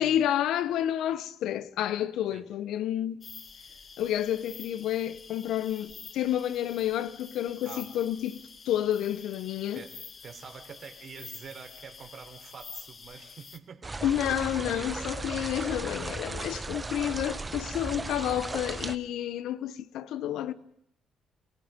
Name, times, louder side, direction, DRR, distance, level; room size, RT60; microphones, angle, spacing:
voice 1, 0.0-3.3 4.0-8.4 8.6-9.8 14.0-20.5, left 11 dB, 85° left, 1.0 m, -30 dB
sound 1, 3.2-13.6, left 5 dB, 45° left, 1.7 m, -48 dB
voice 2, 10.2-14.0 14.3-15.8 16.9-17.2, right 6 dB, 55° right, 4.0 m, -46 dB
sound 2, 13.8-19.0, right 3 dB, 25° right, 1.0 m, -36 dB
28.0 x 28.0 x 5.2 m
cardioid pair, 90°, 0 cm